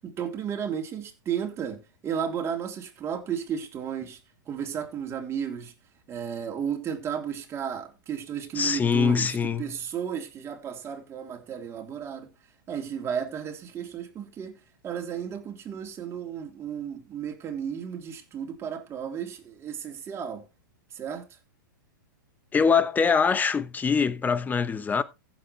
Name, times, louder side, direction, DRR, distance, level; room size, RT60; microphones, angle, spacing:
voice 1, 0.0-4.2 4.5-5.7 6.1-12.3 12.7-14.6 14.8-20.5 20.9-21.4, right 8 dB, 25° right, 3.4 m, -33 dB
voice 2, 8.6-9.6 22.5-25.0, left 6 dB, 15° left, 1.0 m, -23 dB
15.5 x 7.6 x 3.3 m
hypercardioid pair, 120°, 11 cm